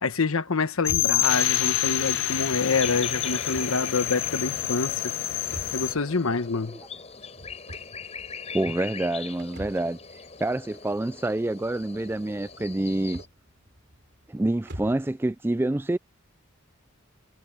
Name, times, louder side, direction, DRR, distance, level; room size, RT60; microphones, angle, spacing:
voice 1, 0.0-5.1 5.7-6.8, left 4 dB, 90° left, 1.2 m, -26 dB
sound 1, 0.8-5.9, left 14 dB, 65° left, 0.5 m, -27 dB
sound 2, 0.8-15.1, right 1 dB, 55° right, 3.1 m, -46 dB
sound 3, 2.7-13.3, left 5 dB, 30° left, 5.6 m, -41 dB
voice 2, 8.5-10.0 10.4-13.2 14.3-16.0, right 1 dB, 10° right, 0.3 m, -27 dB
head